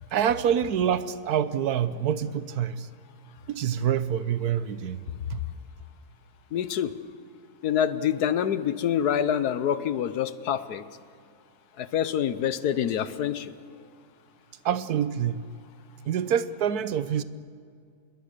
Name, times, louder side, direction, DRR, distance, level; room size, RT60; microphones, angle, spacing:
voice 1, 0.1-2.9 3.5-5.0 5.3-5.4 14.6-15.5 16.1-17.2, right 9 dB, 80° right, 1.4 m, -26 dB
voice 2, 6.5-6.9 7.6-10.8 11.8-13.5, left 9 dB, 85° left, 1.4 m, -26 dB
26.5 x 21.0 x 6.7 m
omnidirectional pair, 1.6 m